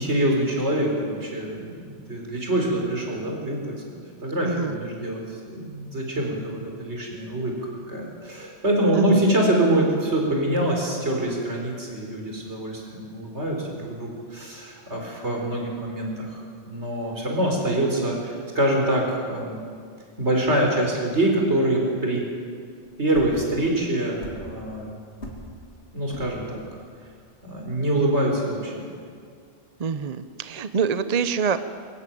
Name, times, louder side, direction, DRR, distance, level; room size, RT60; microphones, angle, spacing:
voice 1, 0.0-3.8 4.2-5.2 5.5-7.5 7.9-19.6 20.2-22.2 23.0-25.0 25.9-26.6 27.4-28.8, right 1 dB, 75° right, 0 dB, 4.7 m, -25 dB
voice 2, 4.4-4.8 8.9-9.2 29.8-31.6, right 6 dB, 40° right, 11 dB, 0.7 m, -25 dB
sound 1, 22.9-28.8, left 1 dB, 75° left, 3.1 m, -41 dB
24.0 x 13.5 x 9.2 m, 2.2 s
omnidirectional pair, 1.2 m